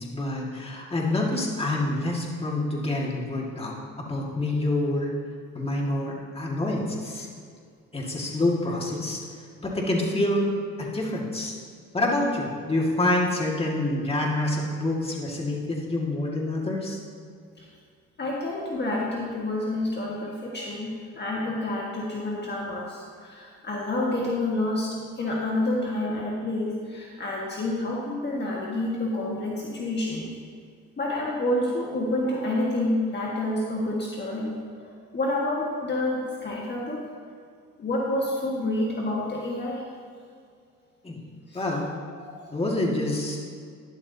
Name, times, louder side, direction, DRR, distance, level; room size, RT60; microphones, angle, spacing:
voice 1, 0.0-3.8 4.1-5.1 5.5-7.3 7.9-9.2 9.6-10.5 10.8-11.5 11.9-17.0 41.0-41.2 41.5-41.9 42.5-43.4, left 1 dB, 20° left, -3 dB, 2.0 m, -27 dB
voice 2, 18.2-30.3 31.0-37.0 37.8-39.8 41.5-41.9 42.3-42.5, left 1 dB, 35° left, -4 dB, 1.7 m, -29 dB
12.0 x 10.5 x 2.8 m, 2.2 s
cardioid pair, 90°, 30 cm